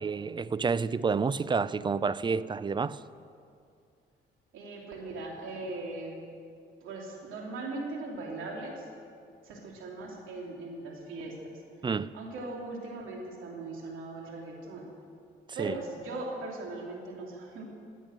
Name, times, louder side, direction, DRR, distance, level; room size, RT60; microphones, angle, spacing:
voice 1, 0.0-3.0 11.8-12.1 15.6-15.7, right 5 dB, 25° right, 0.4 m, -29 dB
voice 2, 4.5-6.2 6.8-8.9 9.4-14.9 15.5-17.6, right 2 dB, 85° right, 2.8 m, -39 dB
15.0 x 9.2 x 7.6 m
cardioid pair, 90°, 20 cm